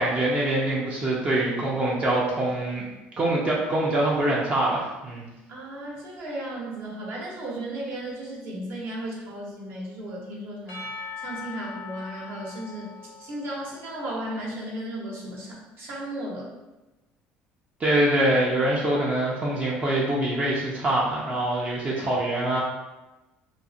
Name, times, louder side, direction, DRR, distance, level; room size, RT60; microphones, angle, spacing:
voice 1, 0.0-2.9 3.2-5.2 17.8-22.6, right 1 dB, 30° right, -5 dB, 0.5 m, -24 dB
voice 2, 5.5-10.8 11.2-12.9 13.2-16.5, right 1 dB, 55° right, -3 dB, 0.8 m, -35 dB
Percussion / Church bell, 10.7-14.9, left 4 dB, 80° left, 0.6 m, -41 dB
2.3 x 2.0 x 2.6 m, 1.0 s
supercardioid pair, 105°, 4 cm